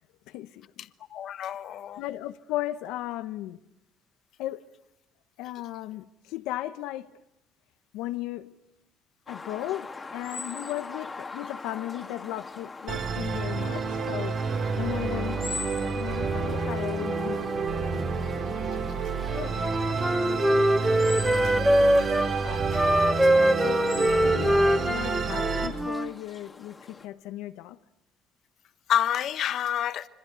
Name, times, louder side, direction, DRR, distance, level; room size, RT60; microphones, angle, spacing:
voice 1, 0.3-0.9 2.0-3.6 4.4-4.6 5.4-7.1 7.9-8.6 9.3-14.4 14.8-15.6 15.9-17.7 18.3-18.5 19.3-19.8 21.4-21.5 23.6-27.8, left 14 dB, 90° left, 0.9 m, -36 dB
voice 2, 1.1-2.0 22.0-22.1 22.4-23.1 28.9-30.1, left 10 dB, 55° left, 1.2 m, -29 dB
sound 1, 9.3-27.1, left 4 dB, 20° left, 1.9 m, -43 dB
Musical instrument, 12.9-25.7, right 4 dB, 50° right, 3.8 m, -29 dB
Wind instrument woodwind instrument, 19.3-22.3 22.7-26.1, right 1 dB, 5° right, 0.9 m, -23 dB
27.0 x 25.0 x 8.2 m
cardioid pair, 135°, 0 cm